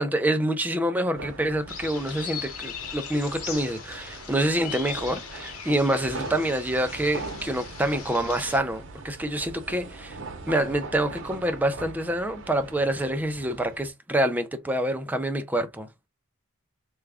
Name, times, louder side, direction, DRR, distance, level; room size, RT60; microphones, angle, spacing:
voice 1, 0.0-10.2 10.5-15.9, right 1 dB, 10° right, 0.5 m, -26 dB
sound 1, 1.1-13.9, right 3 dB, 60° right, 0.8 m, -41 dB
sound 2, 1.7-8.6, left 6 dB, 85° left, 1.1 m, -39 dB
3.5 x 2.3 x 3.3 m
head